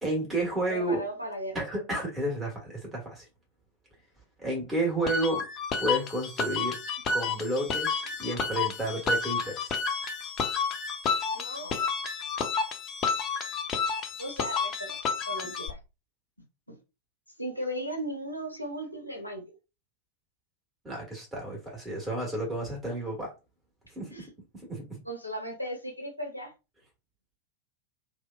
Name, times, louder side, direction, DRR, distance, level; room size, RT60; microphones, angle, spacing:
voice 1, 0.0-1.0 1.5-3.3 4.4-5.4 5.8-6.8 7.1-9.8 15.4-15.5 20.8-23.3 23.9-24.3 24.5-25.0, right 1 dB, 10° right, 1.4 m, -31 dB
voice 2, 0.7-1.6 11.3-11.9 14.2-15.8 16.7-16.8 17.4-19.5 24.1-24.2 25.1-26.5, right 1 dB, 90° left, 0.7 m, -36 dB
sound 1, 5.1-15.7, left 5 dB, 30° left, 0.5 m, -30 dB
2.8 x 2.1 x 2.2 m
figure-of-eight pair, 90°, 0 cm